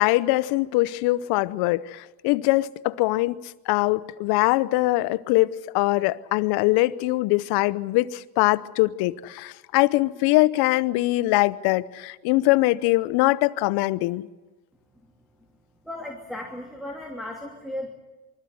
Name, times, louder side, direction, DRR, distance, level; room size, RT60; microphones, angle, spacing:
voice 1, 0.0-14.3, left 19 dB, 75° left, 0.8 m, -22 dB
voice 2, 15.8-17.9, left 1 dB, ahead, 2.8 m, -35 dB
24.5 x 14.0 x 9.5 m
cardioid pair, 115°, 38 cm